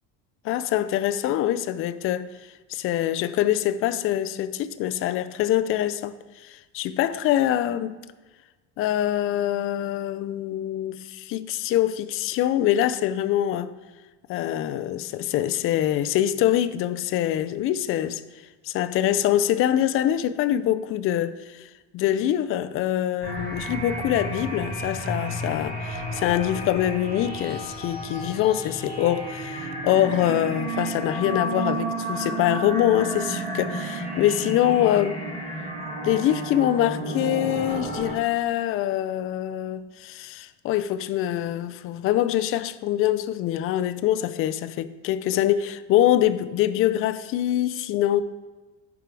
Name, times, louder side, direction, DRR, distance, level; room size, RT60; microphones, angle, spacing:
voice 1, 0.4-2.3 2.7-6.1 6.4-8.0 8.8-13.7 14.3-18.2 18.6-21.7 21.9-35.2 36.0-48.2, left 12 dB, 45° left, 0.5 m, -24 dB
sound 1, 23.2-38.1, right 1 dB, 30° right, 1.9 m, -32 dB
10.5 x 4.8 x 4.7 m
cardioid pair, 165°, 30 cm